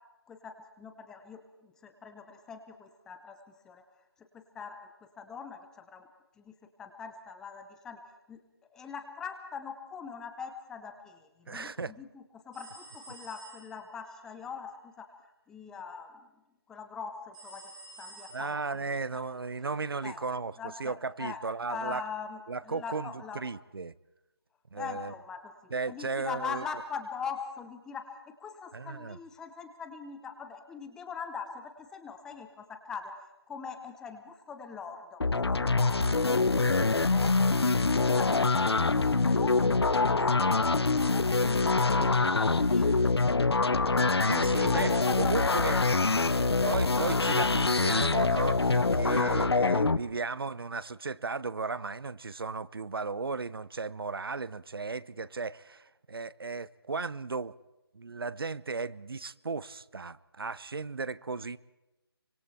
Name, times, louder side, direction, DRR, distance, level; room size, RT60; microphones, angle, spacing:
voice 1, 0.3-3.4 3.6-3.8 4.3-4.8 5.2-6.1 6.4-6.5 6.8-8.0 8.3-8.4 8.7-11.2 11.5-15.1 15.5-16.3 16.7-17.6 18.0-18.8 20.0-20.2 20.6-21.4 21.7-22.4 22.6-23.4 24.7-33.1 33.5-36.2 36.9-37.6 37.9-39.5 39.9-43.0 44.4-46.1, left 6 dB, 5° left, 0.9 m, -41 dB
voice 2, 11.5-11.9 18.3-22.0 22.5-23.9 24.7-25.1 25.7-26.6 28.7-29.2 43.9-44.9 45.2-45.8 46.6-57.5 57.9-61.6, right 4 dB, 65° right, 0.9 m, -35 dB
sound 1, 12.5-14.0 17.3-18.8, right 2 dB, 20° right, 6.0 m, -50 dB
sound 2, 35.2-50.0, left 3 dB, 80° left, 1.1 m, -25 dB
24.5 x 24.5 x 4.3 m
figure-of-eight pair, 165°, 13 cm